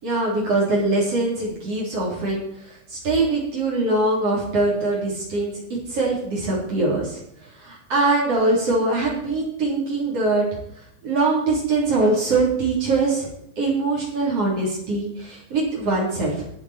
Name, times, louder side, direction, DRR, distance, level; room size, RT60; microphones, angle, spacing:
voice 1, 0.0-5.5 5.9-7.2 7.6-10.5 11.0-13.3 13.6-16.3, right 2 dB, 40° right, -4 dB, 4.3 m, -22 dB
18.0 x 8.1 x 4.4 m, 0.74 s
omnidirectional pair, 4.3 m